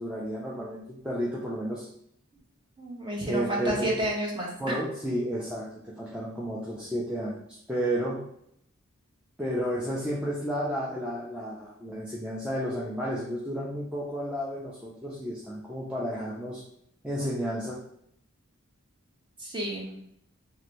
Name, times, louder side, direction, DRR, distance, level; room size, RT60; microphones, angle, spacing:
voice 1, 0.0-1.9 3.2-4.0 4.6-8.2 9.4-16.6 17.0-17.8, equal, 5° right, -6 dB, 0.4 m, -32 dB
voice 2, 2.8-4.5 19.4-20.0, right 1 dB, 20° right, -3 dB, 0.7 m, -30 dB
3.1 x 2.5 x 3.0 m, 0.72 s
head